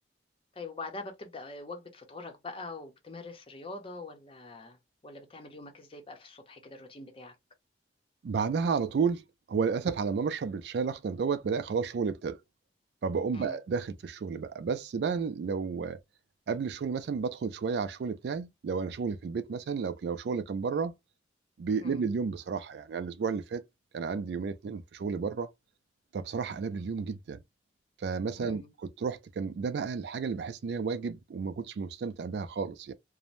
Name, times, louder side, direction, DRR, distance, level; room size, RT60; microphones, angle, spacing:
voice 1, 0.5-4.8 5.0-7.4 13.3-13.6 21.8-22.0 28.4-28.7, left 3 dB, 30° left, 0.7 m, -43 dB
voice 2, 8.2-12.4 13.0-16.0 16.5-20.9 21.6-23.6 23.9-25.5 26.1-27.4 28.0-32.9, right 5 dB, 65° right, 0.3 m, -32 dB
2.6 x 2.0 x 3.1 m
head